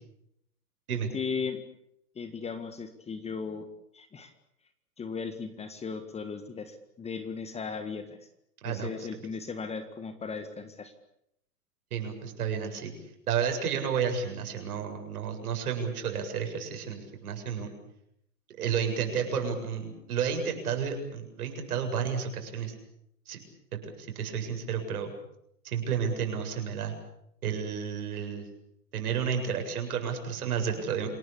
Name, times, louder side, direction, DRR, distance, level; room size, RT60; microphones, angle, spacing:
voice 1, 0.9-1.6 2.2-3.7 3.9-4.3 5.0-8.2 8.6-10.9, left 5 dB, 15° left, 10 dB, 1.8 m, -37 dB
voice 2, 11.9-12.9 13.3-17.7 18.6-22.7 23.3-23.4 23.8-25.1 25.6-26.9 27.4-28.5 28.9-31.1, right 7 dB, 65° right, 4 dB, 7.8 m, -31 dB
28.5 x 18.5 x 8.5 m, 0.76 s
hypercardioid pair, 125°, 47 cm